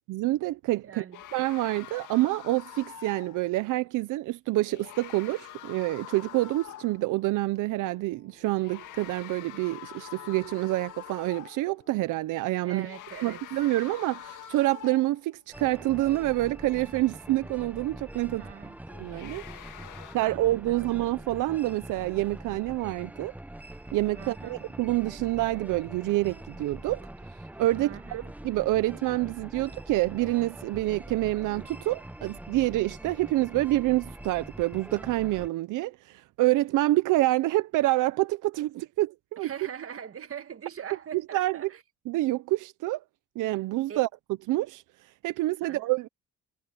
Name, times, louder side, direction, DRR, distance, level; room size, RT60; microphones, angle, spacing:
voice 1, 0.1-1.0 1.3-12.9 13.2-18.5 19.0-19.4 20.1-23.3 23.9-27.1 27.6-39.5 41.1-41.6 42.1-43.0 43.4-44.1 44.5-44.8 45.2-46.1, right 18 dB, 90° right, 0.7 m, -27 dB
voice 2, 0.8-1.2 12.6-13.4 18.3-18.8 19.7-20.9 24.2-24.6 27.8-28.3 39.4-41.8 43.9-44.0 45.6-45.8, right 8 dB, 50° right, 1.8 m, -42 dB
sound 1, 1.1-3.5 4.6-7.1 8.4-11.7 12.7-15.3 18.9-20.2, left 11 dB, 80° left, 2.0 m, -45 dB
sound 2, 4.5-12.1, left 4 dB, 25° left, 7.3 m, -61 dB
sound 3, 15.5-35.5, right 1 dB, 5° right, 0.7 m, -44 dB
cardioid pair, 90°, 30 cm